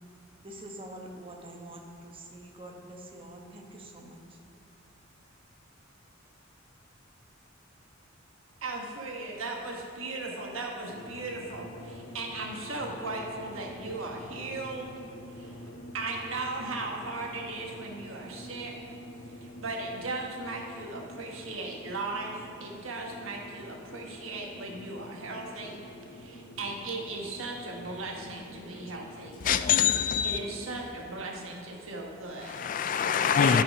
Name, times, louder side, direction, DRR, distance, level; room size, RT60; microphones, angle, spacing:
voice 1, 0.4-4.4, right 1 dB, 25° right, 1.1 m, -45 dB
voice 2, 8.6-15.0 15.3-18.9 19.3-29.4 30.2-32.8 33.3-33.6, right 2 dB, 80° right, 1.3 m, -37 dB
sound 1, 10.8-30.8, left 1 dB, 75° left, 1.0 m, -46 dB
voice 3, 29.4-30.4 32.4-33.6, left 8 dB, 40° left, 0.3 m, -24 dB
12.5 x 5.6 x 5.3 m
head